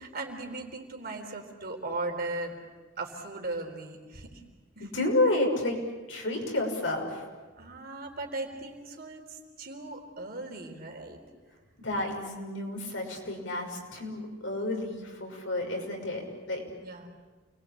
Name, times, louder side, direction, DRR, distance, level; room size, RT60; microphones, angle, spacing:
voice 1, 0.0-2.6 3.0-4.4 4.8-4.9 7.6-11.2 16.7-17.1, right 2 dB, 50° right, 3 dB, 3.9 m, -38 dB
voice 2, 4.8-5.8 6.1-7.2 11.8-16.6, left 2 dB, 70° left, 1 dB, 6.1 m, -30 dB
29.0 x 21.5 x 8.6 m, 1.3 s
head